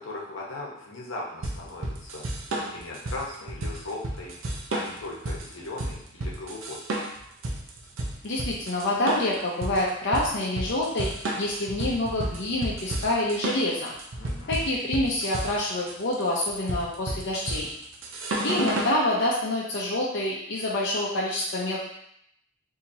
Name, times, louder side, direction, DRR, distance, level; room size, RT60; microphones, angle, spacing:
voice 1, 0.0-6.8 14.2-14.6, left 2 dB, 85° left, -3 dB, 0.9 m, -38 dB
sound 1, 1.4-19.0, right 1 dB, 85° right, 0.6 m, -32 dB
voice 2, 8.2-11.1 11.4-13.9 14.5-17.7 18.4-21.9, left 1 dB, 60° left, -5 dB, 0.6 m, -27 dB
4.3 x 2.8 x 2.6 m, 0.72 s
head